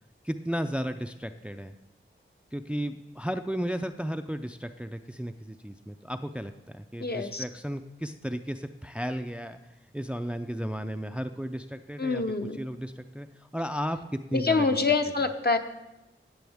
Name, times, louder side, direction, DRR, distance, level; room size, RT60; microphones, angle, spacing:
voice 1, 0.2-1.7 2.5-9.6 9.9-12.2 12.5-14.8, equal, 5° right, 8 dB, 0.4 m, -34 dB
voice 2, 7.0-7.4 12.0-12.6 14.3-15.6, left 4 dB, 50° left, 5 dB, 0.9 m, -26 dB
17.0 x 7.1 x 3.5 m, 0.93 s
wide cardioid pair, 50°, 21 cm